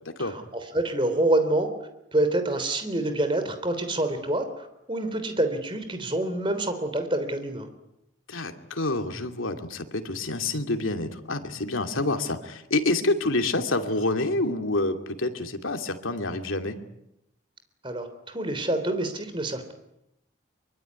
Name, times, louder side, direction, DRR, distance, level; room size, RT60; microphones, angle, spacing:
voice 1, 0.2-1.7 2.1-7.7 17.8-19.7, right 1 dB, 25° right, 9 dB, 3.4 m, -27 dB
voice 2, 8.3-16.8, left 2 dB, 85° left, 5 dB, 2.7 m, -27 dB
24.5 x 24.0 x 9.6 m, 0.85 s
head